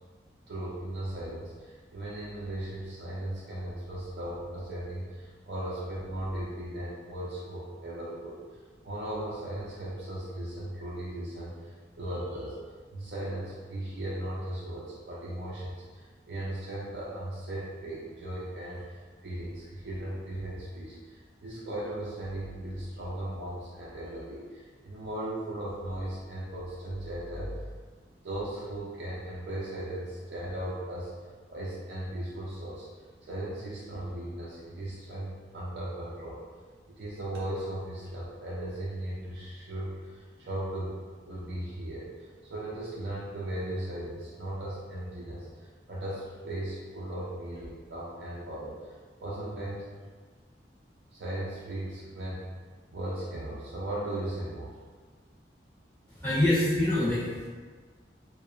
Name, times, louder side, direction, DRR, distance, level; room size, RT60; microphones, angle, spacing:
voice 1, 0.5-8.4 8.8-12.6 12.9-27.5 28.2-31.1 31.5-32.9 33.2-36.4 37.0-41.0 41.3-42.1 42.4-48.9 49.2-49.9 51.1-52.5 52.9-54.7, right 1 dB, 65° right, -7 dB, 0.4 m, -37 dB
voice 2, 56.1-57.5, left 1 dB, 15° left, -12 dB, 0.5 m, -25 dB
2.7 x 2.1 x 2.4 m, 1.5 s
head